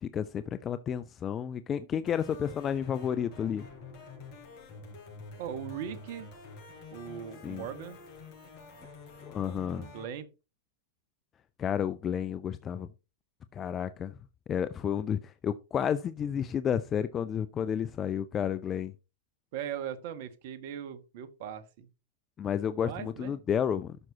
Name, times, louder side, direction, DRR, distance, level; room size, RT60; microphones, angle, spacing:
voice 1, 0.0-3.7 7.4-7.7 9.3-9.9 11.6-12.9 13.5-14.2 14.5-18.9 22.4-24.0, left 8 dB, 25° left, 0.5 m, -31 dB
sound 1, 2.1-10.1, left 4 dB, 45° left, 4.8 m, -48 dB
voice 2, 5.4-6.3 6.9-8.0 9.7-10.3 19.5-21.9 22.8-23.3, right 9 dB, 50° right, 1.2 m, -39 dB
12.0 x 6.0 x 2.8 m
figure-of-eight pair, 100°, 0 cm